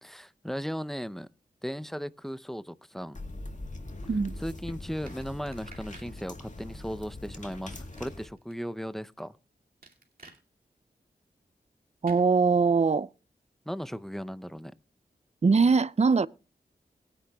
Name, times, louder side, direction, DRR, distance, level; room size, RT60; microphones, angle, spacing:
voice 1, 0.0-1.3 1.6-3.2 4.4-9.4 13.7-14.7, equal, ahead, 0.6 m, -36 dB
sound 1, 3.1-8.3, left 2 dB, 45° left, 2.0 m, -42 dB
sound 2, 5.1-6.1 7.5-8.5 9.8-10.4 12.0-12.3, right 3 dB, 55° right, 2.4 m, -51 dB
voice 2, 12.0-13.1 15.4-16.3, right 4 dB, 40° right, 0.5 m, -22 dB
21.0 x 9.9 x 2.3 m
wide cardioid pair, 60°, 17 cm